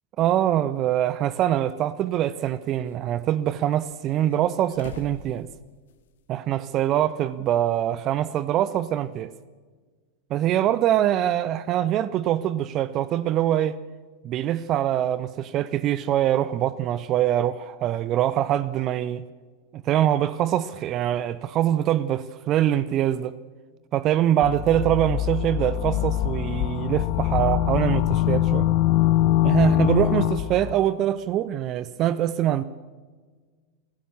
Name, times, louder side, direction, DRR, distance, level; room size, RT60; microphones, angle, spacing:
voice 1, 0.2-5.5 6.3-9.3 10.3-13.8 14.2-19.2 19.7-23.4 23.9-28.7 29.4-32.6, right 12 dB, 35° right, 0.7 m, -24 dB
sound 1, 1.1-1.2 2.1-3.0 3.9-6.2 6.5-6.6 8.2-8.3, left 6 dB, 60° left, 1.9 m, -46 dB
sound 2, 24.4-30.7, left 13 dB, 45° left, 0.8 m, -23 dB
28.0 x 17.0 x 7.0 m
figure-of-eight pair, 90°, 0 cm